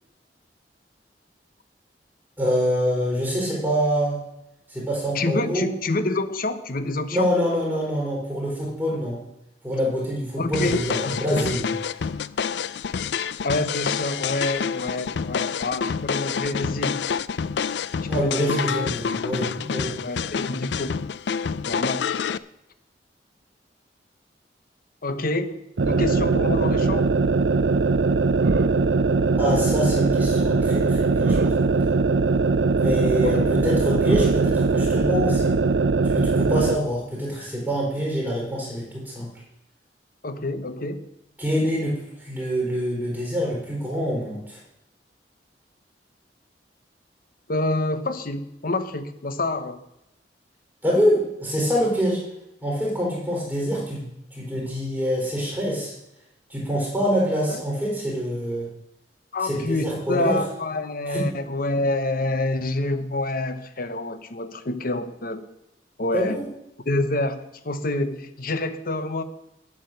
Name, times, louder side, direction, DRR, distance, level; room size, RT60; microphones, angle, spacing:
voice 1, 2.4-4.2 4.7-5.7 7.1-9.2 9.6-11.7 12.0-12.1 18.1-19.9 29.4-31.8 32.8-35.5 36.0-39.3 41.4-44.6 50.8-52.2 52.6-55.9 56.5-58.7 59.4-60.4 61.1-61.3 66.1-66.5, equal, 5° right, -4 dB, 4.3 m, -25 dB
voice 2, 5.1-7.3 10.4-11.5 13.4-17.0 18.1-18.9 20.0-21.1 21.7-22.2 25.0-27.1 29.2-29.3 33.2-33.6 40.2-41.0 47.5-49.8 57.5-57.6 59.3-65.5 66.0-66.4 66.9-69.2, left 2 dB, 55° left, 10 dB, 1.1 m, -27 dB
sound 1, 10.5-22.4, left 6 dB, 70° left, 0.4 m, -28 dB
sound 2, 25.8-36.8, right 3 dB, 80° right, 0.6 m, -21 dB
10.0 x 8.6 x 6.7 m, 0.86 s
head